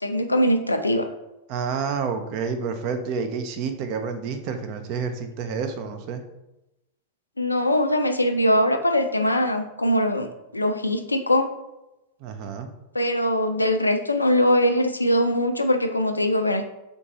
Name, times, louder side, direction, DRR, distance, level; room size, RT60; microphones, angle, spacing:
voice 1, 0.0-1.1 7.4-11.5 12.9-16.7, left 1 dB, 85° left, 7 dB, 0.4 m, -22 dB
voice 2, 1.5-6.2 12.2-12.7, right 5 dB, 45° right, 8 dB, 0.5 m, -29 dB
3.8 x 2.6 x 4.0 m, 0.94 s
figure-of-eight pair, 90°, 0 cm